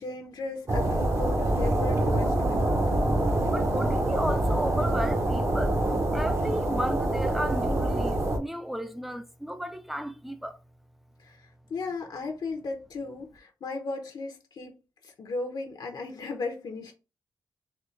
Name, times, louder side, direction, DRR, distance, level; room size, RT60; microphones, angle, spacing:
voice 1, 0.0-2.9 11.2-14.8 15.0-16.9, left 3 dB, 60° left, 0.8 m, -36 dB
sound 1, 0.7-8.4, right 1 dB, 35° right, 0.8 m, -25 dB
voice 2, 3.5-5.8 6.1-10.6, equal, ahead, 0.5 m, -34 dB
4.3 x 3.0 x 3.1 m
wide cardioid pair, 145°, 8 cm